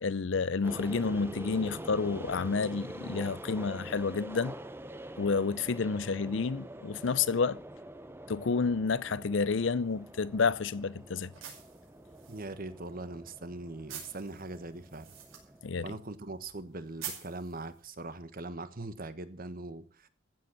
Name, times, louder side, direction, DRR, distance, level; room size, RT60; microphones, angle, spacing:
voice 1, 0.0-4.5 5.2-7.6 8.3-11.3 15.6-15.9, left 4 dB, 60° left, 0.6 m, -30 dB
sound 1, 0.6-15.9, right 1 dB, 10° right, 0.6 m, -45 dB
sound 2, 9.6-18.2, right 8 dB, 80° right, 5.7 m, -49 dB
voice 2, 12.3-15.1 15.8-20.1, right 2 dB, 45° right, 1.3 m, -41 dB
15.0 x 8.0 x 7.5 m
head